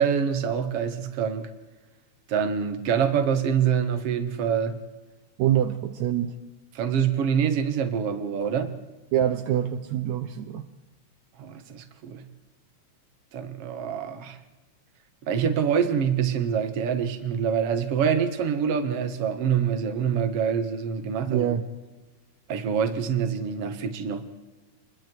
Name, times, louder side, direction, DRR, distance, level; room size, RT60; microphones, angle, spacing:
voice 1, 0.0-1.5 2.3-4.8 6.7-8.8 11.4-12.3 13.3-14.4 15.3-21.5 22.5-24.2, right 7 dB, 55° right, 2.3 m, -25 dB
voice 2, 5.4-6.4 9.1-10.7 21.3-21.6, right 11 dB, 75° right, 2.2 m, -25 dB
27.5 x 21.5 x 4.6 m
omnidirectional pair, 3.4 m